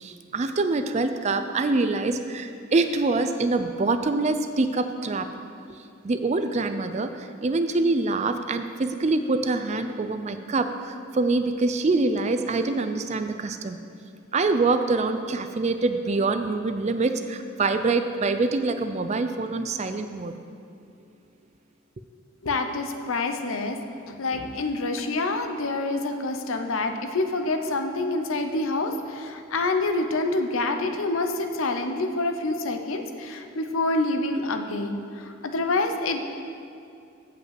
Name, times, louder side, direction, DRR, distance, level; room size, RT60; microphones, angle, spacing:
voice 1, 0.0-5.3 5.7-5.8 6.0-13.8 14.3-20.3, right 3 dB, 35° right, 9 dB, 0.4 m, -25 dB
voice 2, 22.4-23.8 24.1-36.2, left 2 dB, 80° left, 6 dB, 0.7 m, -27 dB
8.1 x 5.3 x 7.6 m, 2.5 s
head